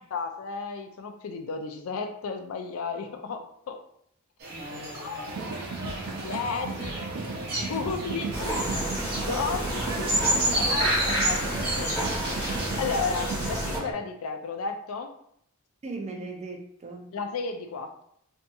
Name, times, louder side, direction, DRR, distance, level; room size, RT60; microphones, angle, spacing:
voice 1, 0.1-3.8 4.7-5.5 6.2-7.0 7.6-8.5 9.0-10.2 10.5-15.1 17.1-18.0, left 5 dB, 70° left, 6 dB, 0.4 m, -34 dB
sound 1, 4.4-13.2, right 1 dB, 45° right, 0.8 m, -32 dB
voice 2, 4.5-5.4 15.8-17.2, right 2 dB, 30° right, 2 dB, 0.4 m, -39 dB
sound 2, 5.3-13.9, right 3 dB, 85° right, 0.5 m, -35 dB
sound 3, 8.3-13.8, equal, 10° left, 0.7 m, -30 dB
2.6 x 2.6 x 2.2 m, 0.71 s
head